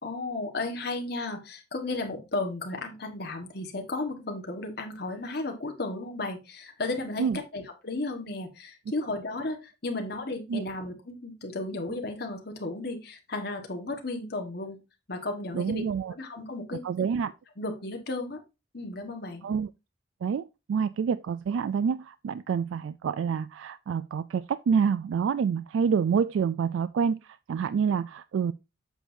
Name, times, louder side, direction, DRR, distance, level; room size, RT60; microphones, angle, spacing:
voice 1, 0.0-14.8 15.1-17.1 17.6-18.4 18.7-19.5, left 2 dB, 55° left, 1.5 m, -34 dB
voice 2, 15.5-16.1 16.8-17.3 19.4-19.7 20.2-28.5, right 6 dB, 80° right, 0.3 m, -27 dB
8.0 x 6.2 x 2.7 m
head